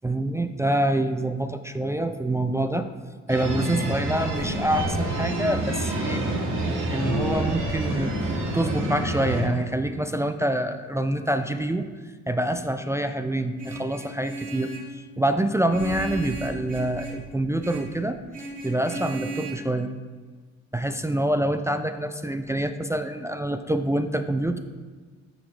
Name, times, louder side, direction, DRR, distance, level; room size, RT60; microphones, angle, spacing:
voice 1, 0.0-2.9 3.3-6.3 6.9-8.1 8.5-11.9 12.3-18.2 18.6-19.9 20.7-24.6, right 1 dB, 10° right, 7 dB, 0.3 m, -26 dB
sound 1, 3.3-9.4, right 1 dB, 85° right, 2.2 m, -27 dB
Vehicle horn car horn honking, 13.6-15.0 15.7-17.3 17.6-18.0 18.3-19.5, right 3 dB, 30° right, 2.0 m, -36 dB
Boom, 15.7-18.7, left 1 dB, 10° left, 1.6 m, -43 dB
9.1 x 6.4 x 3.2 m, 1.4 s
cardioid pair, 90°, 30 cm